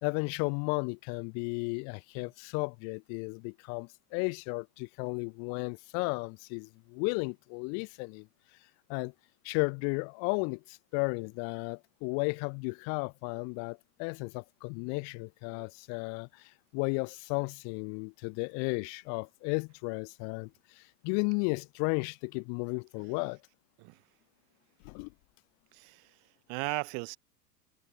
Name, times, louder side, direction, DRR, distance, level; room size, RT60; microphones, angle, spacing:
voice 1, 0.0-8.3 8.9-9.1 9.4-23.4 24.8-25.1, left 37 dB, 35° left, 0.5 m, -34 dB
voice 2, 25.7-26.2 26.5-27.2, right 40 dB or more, 45° right, 0.9 m, -37 dB
supercardioid pair, 130°, 48 cm